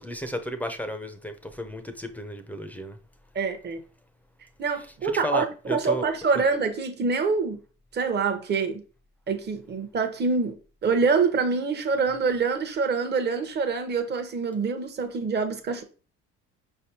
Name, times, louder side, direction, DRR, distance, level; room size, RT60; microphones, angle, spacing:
voice 1, 0.0-3.0 5.0-6.1, equal, 5° left, 0.6 m, -33 dB
voice 2, 3.3-3.8 4.6-7.6 7.9-8.8 9.3-10.6 10.8-15.8, right 4 dB, 30° right, 0.9 m, -25 dB
5.2 x 3.4 x 2.8 m
supercardioid pair, 85°, 32 cm